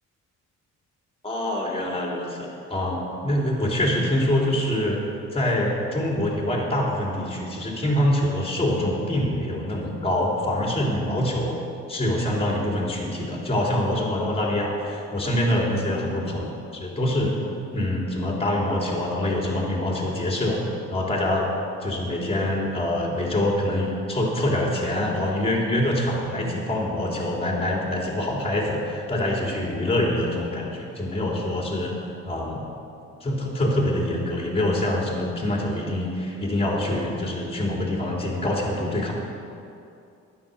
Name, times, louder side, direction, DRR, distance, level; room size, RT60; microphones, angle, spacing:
voice 1, 1.2-5.0 5.3-11.5 11.9-16.4 16.7-17.3 17.7-20.6 20.9-21.5 21.8-31.9 32.2-32.7 33.2-39.1, left 1 dB, 20° left, -2 dB, 3.4 m, -25 dB
11.5 x 9.8 x 6.9 m, 2.6 s
cardioid pair, 90°, 30 cm